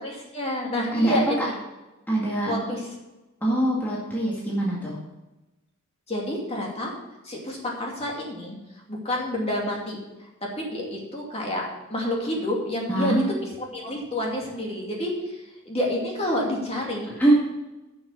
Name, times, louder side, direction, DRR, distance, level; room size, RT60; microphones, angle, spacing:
voice 1, 0.0-1.5 2.5-2.9 6.1-6.9 7.2-8.6 8.9-10.0 10.4-13.2 13.7-17.1, left 1 dB, 30° left, -2 dB, 2.5 m, -29 dB
voice 2, 0.9-1.5 2.1-2.8 3.4-5.0 12.9-13.3 17.2-17.3, right 1 dB, 10° left, -6 dB, 2.0 m, -24 dB
11.0 x 6.3 x 6.3 m, 1.0 s
head